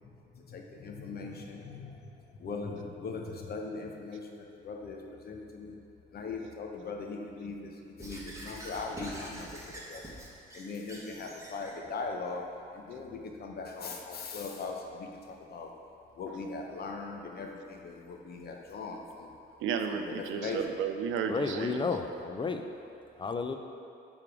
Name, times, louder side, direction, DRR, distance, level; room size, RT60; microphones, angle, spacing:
voice 1, 0.3-2.1 2.4-5.8 6.1-7.7 8.0-10.0 10.5-12.4 12.7-15.7 16.2-19.3 20.0-20.6, left 4 dB, 50° left, 2 dB, 0.8 m, -40 dB
Squeak / Writing, 8.0-11.8, right 1 dB, 15° right, 1.2 m, -45 dB
voice 2, 19.6-21.9, right 7 dB, 80° right, 6 dB, 0.5 m, -33 dB
voice 3, 21.3-22.6 23.2-23.5, left 4 dB, 25° left, 6 dB, 0.4 m, -32 dB
6.8 x 3.6 x 4.7 m, 2.6 s
cardioid pair, 90°, 20 cm